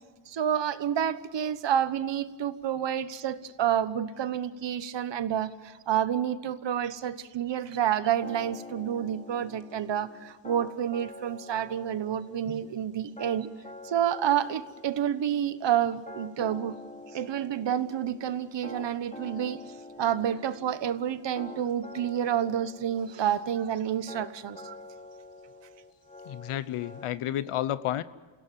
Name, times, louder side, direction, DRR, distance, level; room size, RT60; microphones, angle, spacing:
voice 1, 0.3-13.5 13.8-16.8 17.1-24.8, right 9 dB, 60° right, 13 dB, 1.3 m, -29 dB
sound 1, 8.2-27.1, left 2 dB, 15° left, 3.0 m, -47 dB
voice 2, 26.2-28.0, left 12 dB, 85° left, 15 dB, 1.0 m, -31 dB
28.0 x 16.5 x 9.2 m, 1.3 s
cardioid pair, 105°, 50 cm